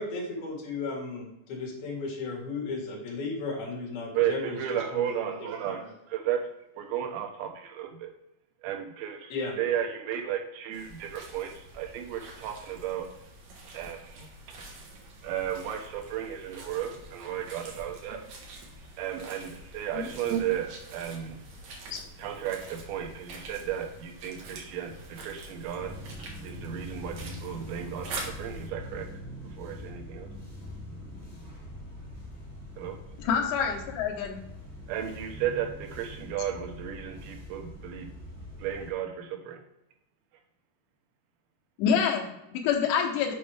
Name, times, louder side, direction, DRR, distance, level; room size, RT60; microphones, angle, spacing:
voice 1, 0.0-4.6 4.9-5.3 5.7-5.9 9.3-9.6, left 3 dB, 65° left, -3 dB, 3.6 m, -35 dB
voice 2, 4.1-6.5 6.8-8.1 8.6-13.1 13.7-14.3 15.2-18.2 19.0-21.4 22.2-26.0 26.4-29.1 29.6-30.3 32.8-33.0 34.9-38.1 38.6-39.6, right 10 dB, 85° right, 2 dB, 3.3 m, -34 dB
sound 1, 10.7-28.7, right 2 dB, 60° right, 2.0 m, -45 dB
sound 2, 25.8-38.9, equal, 5° right, 1.7 m, -43 dB
voice 3, 33.3-34.4 41.8-43.4, left 7 dB, 85° left, 1 dB, 3.3 m, -27 dB
8.3 x 5.4 x 3.4 m, 0.87 s
omnidirectional pair, 4.9 m